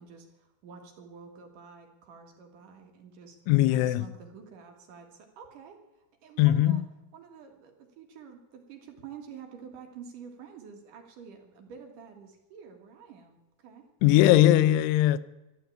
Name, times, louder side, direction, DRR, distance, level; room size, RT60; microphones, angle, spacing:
voice 1, 0.0-3.4 3.7-5.8 6.2-6.8 7.1-13.9, right 6 dB, 60° right, 2.5 m, -48 dB
voice 2, 3.5-4.1 6.4-6.9 14.0-15.2, left 14 dB, 85° left, 3.0 m, -20 dB
12.5 x 12.0 x 8.5 m
omnidirectional pair, 5.5 m